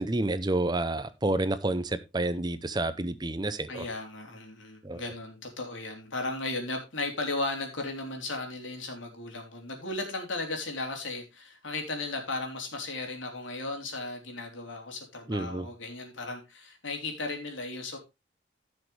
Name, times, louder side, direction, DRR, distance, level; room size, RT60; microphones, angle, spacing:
voice 1, 0.0-3.9 4.8-5.0 15.3-15.7, right 2 dB, 20° right, 0.6 m, -29 dB
voice 2, 3.7-18.0, left 2 dB, 80° left, 3.4 m, -36 dB
15.5 x 6.3 x 3.3 m
head